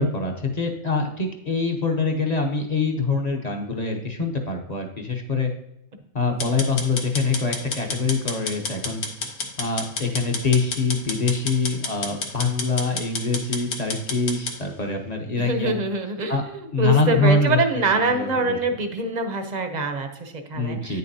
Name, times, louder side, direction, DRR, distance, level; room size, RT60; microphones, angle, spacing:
voice 1, 0.0-5.5 6.1-9.0 9.6-15.8 16.3-16.4 16.7-18.6 20.5-21.0, left 3 dB, 35° left, 2 dB, 0.8 m, -24 dB
sound 1, 6.4-14.6, left 4 dB, 90° left, 1.5 m, -30 dB
voice 2, 15.3-21.0, right 3 dB, 45° right, 7 dB, 0.6 m, -25 dB
9.1 x 6.6 x 2.7 m, 0.78 s
omnidirectional pair, 1.5 m